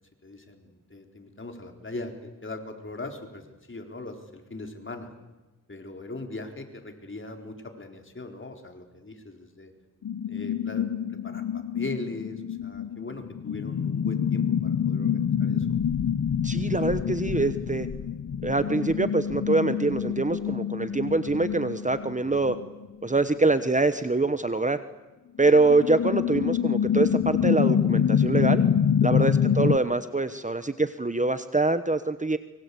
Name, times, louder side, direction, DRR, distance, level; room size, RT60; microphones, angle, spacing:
voice 1, 0.2-5.1 5.7-9.7 10.2-15.8 29.4-29.8, left 2 dB, 35° left, 4 dB, 4.0 m, -40 dB
sound 1, 10.0-22.9 23.5-23.6 25.4-29.8, left 8 dB, 60° left, 0.9 m, -26 dB
voice 2, 16.4-17.9 18.4-22.6 23.0-24.8 25.4-28.6 29.0-32.4, right 3 dB, 20° right, 11 dB, 1.1 m, -24 dB
24.5 x 23.0 x 8.4 m, 1.1 s
cardioid pair, 70°, 34 cm